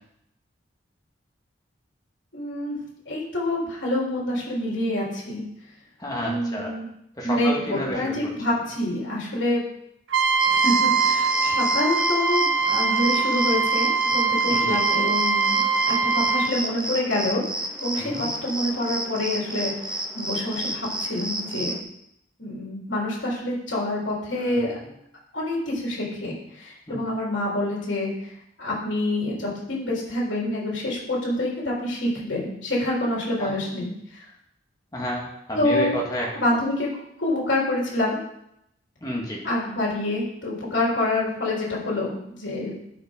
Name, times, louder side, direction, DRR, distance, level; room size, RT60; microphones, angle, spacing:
voice 1, 2.3-2.8 3.1-5.5 6.2-6.9 7.2-9.6 10.5-17.4 17.8-21.8 22.4-24.7 25.3-28.3 28.6-34.2 35.5-36.0 36.3-36.9 37.2-38.2 39.4-42.8, left 1 dB, 80° left, -4 dB, 3.6 m, -27 dB
voice 2, 6.0-6.7 7.2-8.2 14.5-14.8 17.9-18.2 24.4-24.6 26.9-27.0 33.4-33.5 34.9-36.3 39.0-39.4, equal, 20° left, -2 dB, 1.7 m, -30 dB
Trumpet, 10.1-16.5, right 5 dB, 90° right, 0.6 m, -22 dB
sound 1, 10.4-21.8, right 1 dB, 5° right, 0.5 m, -31 dB
11.5 x 5.2 x 3.7 m, 0.77 s
head